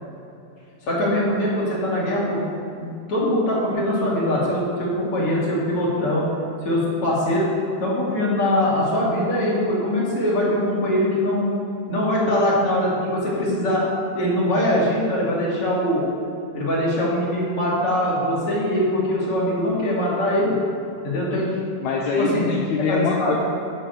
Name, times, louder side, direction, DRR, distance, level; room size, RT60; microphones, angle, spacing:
voice 1, 0.9-2.4 2.8-6.3 6.6-7.5 7.8-11.5 11.9-13.8 14.1-16.0 16.5-20.5 21.0-21.5 22.2-22.4 22.8-23.3, left 1 dB, 50° left, -6 dB, 3.4 m, -22 dB
voice 2, 21.8-23.3, left 5 dB, 75° left, -2 dB, 2.2 m, -24 dB
10.0 x 6.1 x 6.8 m, 2.7 s
omnidirectional pair, 3.4 m